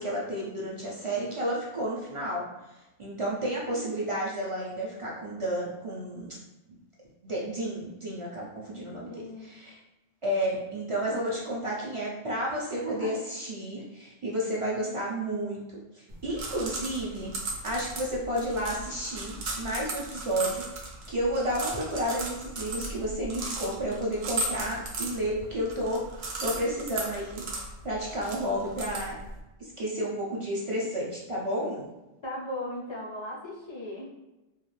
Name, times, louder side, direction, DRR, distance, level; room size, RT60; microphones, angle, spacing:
voice 1, 0.0-2.4 3.0-6.4 7.2-9.8 10.2-17.3 17.6-26.0 26.4-27.4 27.8-29.1 29.6-31.9, equal, 50° right, -5 dB, 0.4 m, -31 dB
voice 2, 8.7-9.5 12.8-13.1 13.8-13.9 32.2-34.0, equal, 45° left, -3 dB, 0.3 m, -37 dB
sound 1, 16.1-29.4, right 2 dB, 65° right, 0.8 m, -37 dB
2.4 x 2.3 x 3.1 m, 1.0 s
omnidirectional pair, 1.2 m